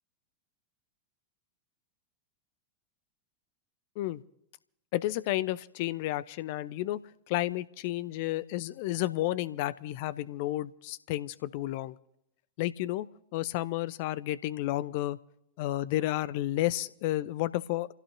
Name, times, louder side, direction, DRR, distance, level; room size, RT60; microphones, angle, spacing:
voice 1, 4.9-7.0 7.3-12.0 12.6-13.1 13.3-15.2 15.6-17.9, left 15 dB, 50° left, 18 dB, 0.6 m, -31 dB
28.5 x 16.5 x 2.8 m, 0.79 s
figure-of-eight pair, 90°, 0 cm